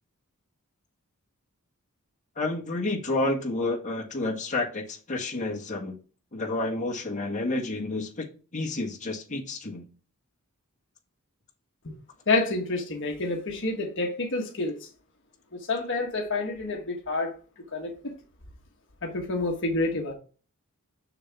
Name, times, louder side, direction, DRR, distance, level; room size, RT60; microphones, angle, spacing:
voice 1, 2.4-5.9 6.3-8.2 8.5-9.9, left 2 dB, 35° left, 1.7 m, -30 dB
voice 2, 12.3-14.9 15.5-17.3 17.7-18.1 19.0-20.1, left 2 dB, 55° left, 1.4 m, -28 dB
6.9 x 6.7 x 3.5 m
head